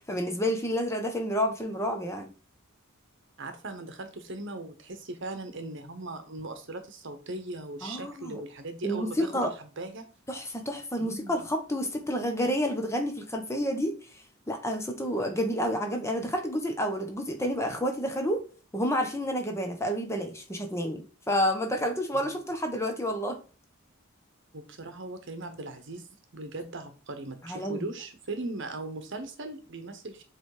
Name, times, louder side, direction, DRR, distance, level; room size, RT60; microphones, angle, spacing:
voice 1, 0.0-2.3 7.8-8.4 8.8-9.5 10.3-14.0 14.5-18.4 18.7-23.4 27.4-27.8, equal, 15° left, 1.1 m, -29 dB
voice 2, 3.4-9.3 9.6-10.1 11.0-11.5 22.1-22.5 24.5-26.0 26.3-30.2, right 2 dB, 55° right, 1.1 m, -39 dB
7.1 x 3.4 x 4.9 m
head